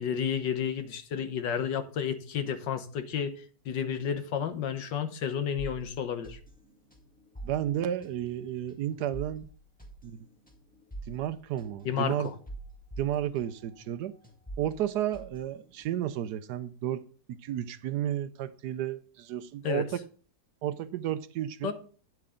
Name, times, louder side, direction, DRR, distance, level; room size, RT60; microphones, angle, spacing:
voice 1, 0.0-6.4 11.8-12.3 19.6-19.8 21.6-21.7, left 8 dB, 90° left, 1.7 m, -31 dB
sound 1, 5.6-14.0 14.2-16.2, right 2 dB, 5° left, 1.9 m, -46 dB
voice 2, 7.4-9.5 10.0-10.2 11.1-12.3 13.0-14.1 14.6-17.0 17.3-19.9 20.6-21.7, right 11 dB, 75° right, 1.1 m, -32 dB
9.8 x 7.6 x 3.8 m
omnidirectional pair, 1.9 m